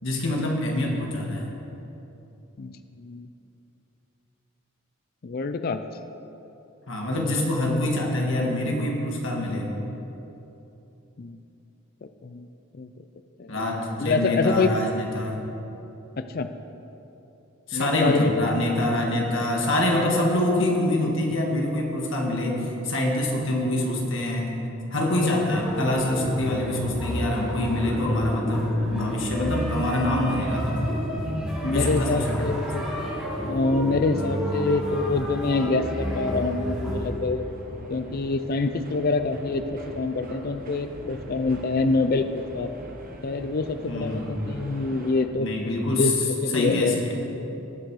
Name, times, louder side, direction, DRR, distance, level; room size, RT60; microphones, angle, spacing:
voice 1, 0.0-1.5 6.9-9.7 13.5-15.4 17.7-24.5 24.9-30.9 31.7-32.5 43.9-44.5 45.4-46.1 46.5-47.2, left 1 dB, 60° left, -1 dB, 1.8 m, -25 dB
voice 2, 5.2-5.8 11.2-11.4 12.0-12.5 12.8-12.9 13.4-13.6 14.0-14.8 16.2-16.5 17.7-18.5 31.6-32.8 33.4-37.4 37.9-42.7 43.2-45.5 45.8-47.0, left 3 dB, 45° left, 9 dB, 0.4 m, -26 dB
sound 1, 25.4-37.1, equal, 5° right, 2.9 m, -30 dB
sound 2, 32.0-45.3, right 1 dB, 40° right, 1.1 m, -43 dB
19.0 x 6.3 x 4.8 m, 3.0 s
head